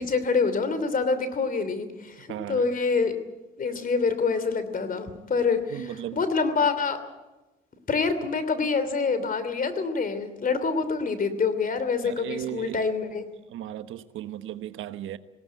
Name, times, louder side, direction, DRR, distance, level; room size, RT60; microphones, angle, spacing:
voice 1, 0.0-3.1 3.6-5.8 6.1-7.0 7.9-13.2, left 4 dB, 45° left, 3.0 m, -26 dB
voice 2, 2.3-2.7 5.6-6.2 12.0-12.8 13.5-15.2, right 12 dB, 85° right, 1.1 m, -36 dB
19.5 x 17.5 x 9.2 m
cardioid pair, 90°, 20 cm